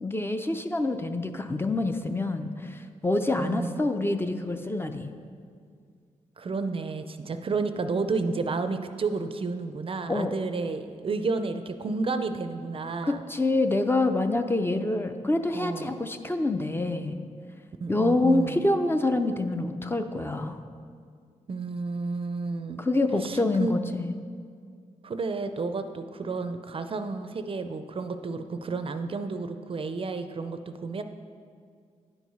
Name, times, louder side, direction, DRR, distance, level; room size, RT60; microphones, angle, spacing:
voice 1, 0.0-5.1 10.1-10.3 13.1-17.2 17.9-20.6 22.8-24.1, left 2 dB, 15° left, 7 dB, 0.5 m, -26 dB
voice 2, 3.4-3.9 6.4-13.2 15.5-16.0 17.8-18.7 21.5-22.8 23.2-23.7 25.0-31.0, right 4 dB, 45° right, 9 dB, 0.5 m, -31 dB
9.7 x 4.7 x 5.4 m, 2.1 s
cardioid pair, 90°, 13 cm